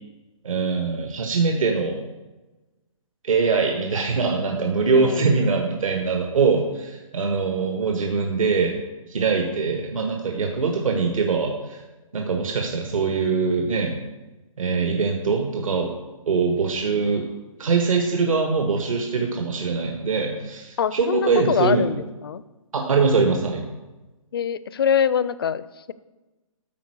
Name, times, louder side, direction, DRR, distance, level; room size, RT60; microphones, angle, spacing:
voice 1, 0.4-2.0 3.2-8.8 9.1-11.8 12.1-13.9 14.6-15.9 16.3-17.3 17.6-21.8 22.7-23.7, right 4 dB, 70° right, 2 dB, 1.4 m, -22 dB
voice 2, 4.9-5.3 20.8-22.4 24.3-25.9, left 8 dB, 45° left, 16 dB, 0.4 m, -24 dB
13.0 x 4.5 x 4.8 m, 1.1 s
hypercardioid pair, 160°, 18 cm